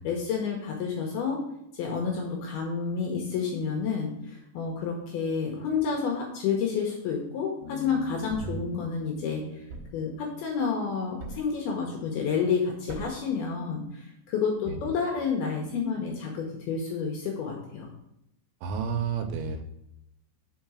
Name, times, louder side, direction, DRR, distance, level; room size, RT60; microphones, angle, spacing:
voice 1, 0.0-1.4 1.7-9.6 9.9-17.9, left 6 dB, 80° left, 0 dB, 2.3 m, -30 dB
Bass guitar, 7.6-11.1, left 7 dB, 65° left, 2.0 m, -46 dB
Thump thud, 8.3-8.7 9.7-10.1 11.2-11.6 12.9-13.3, right 4 dB, 65° right, 2.5 m, -41 dB
voice 2, 18.6-19.6, right 6 dB, 90° right, 6 dB, 3.0 m, -31 dB
5.8 x 4.7 x 5.9 m, 0.81 s
omnidirectional pair, 5.3 m